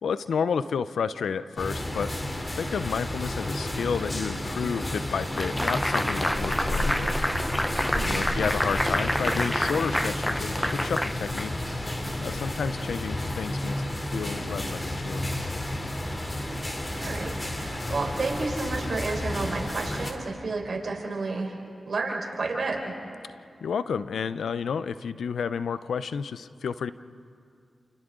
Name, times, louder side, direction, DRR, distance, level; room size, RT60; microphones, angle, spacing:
voice 1, 0.0-2.1 2.5-7.6 8.0-11.5 12.2-15.2 23.6-26.9, left 6 dB, 85° left, 14 dB, 0.6 m, -31 dB
sound 1, 1.6-20.1, left 1 dB, 30° left, 3.4 m, -31 dB
sound 2, 5.4-11.8, equal, 10° left, 0.8 m, -29 dB
voice 2, 7.9-8.3 16.4-16.6 17.0-21.6 21.8-22.9, right 3 dB, 65° right, 0 dB, 4.6 m, -31 dB
29.5 x 28.5 x 3.8 m, 2.3 s
cardioid pair, 40°, 0 cm